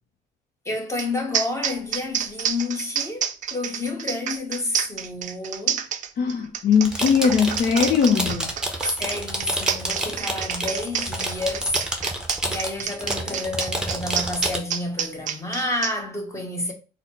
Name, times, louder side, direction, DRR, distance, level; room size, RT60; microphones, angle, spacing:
voice 1, 0.6-5.8 8.8-11.8 12.5-16.7, left 2 dB, 15° left, 1.0 m, -29 dB
sound 1, 1.0-1.1 1.3-15.9, right 8 dB, 50° right, 0.4 m, -28 dB
voice 2, 6.2-8.5, left 6 dB, 55° left, 0.6 m, -20 dB
sound 2, 6.8-14.6, right 1 dB, 5° right, 0.7 m, -29 dB
4.0 x 2.0 x 4.3 m
cardioid pair, 110°, 17 cm